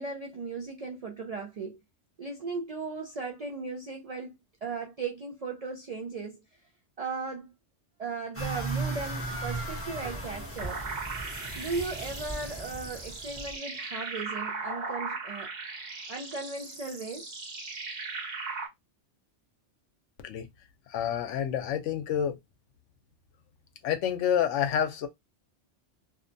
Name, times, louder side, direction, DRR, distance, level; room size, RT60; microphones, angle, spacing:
voice 1, 0.0-1.8 2.2-4.3 4.6-6.4 7.0-7.5 8.0-10.8 11.6-15.5 16.1-17.3, right 4 dB, 65° right, 0.3 m, -37 dB
sound 1, 8.3-13.5, right 2 dB, 15° left, 0.7 m, -36 dB
sound 2, 10.6-18.7, right 4 dB, 45° right, 0.7 m, -38 dB
voice 2, 20.9-22.4 23.8-25.1, left 9 dB, 85° left, 0.9 m, -28 dB
2.7 x 2.1 x 2.5 m
omnidirectional pair, 1.2 m